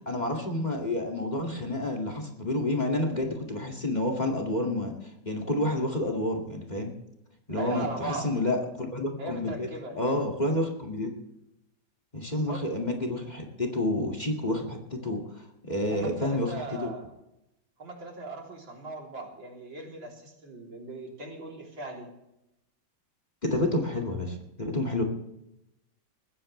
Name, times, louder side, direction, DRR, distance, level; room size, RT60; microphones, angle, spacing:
voice 1, 0.0-6.9 7.5-9.7 9.9-11.1 12.1-16.9 23.4-25.0, left 1 dB, 20° left, 3 dB, 2.2 m, -29 dB
voice 2, 7.5-8.3 9.2-10.0 12.3-12.7 15.8-17.1 17.8-22.1, right 2 dB, 80° right, 0 dB, 4.1 m, -39 dB
21.5 x 15.0 x 3.3 m, 0.86 s
omnidirectional pair, 2.1 m